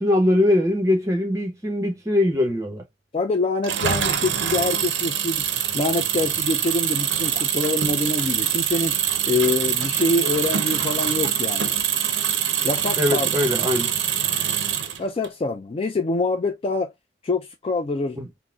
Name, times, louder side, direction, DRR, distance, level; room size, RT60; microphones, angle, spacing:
voice 1, 0.0-2.8 13.0-13.9 18.2-18.3, left 1 dB, 15° right, 0.9 m, -21 dB
voice 2, 3.1-5.4 5.7-9.0 9.2-11.8 12.6-13.3 15.0-16.9 17.2-18.2, left 3 dB, 30° left, 0.3 m, -25 dB
Engine, 3.6-15.3, right 9 dB, 65° right, 0.5 m, -24 dB
3.8 x 2.0 x 2.3 m
head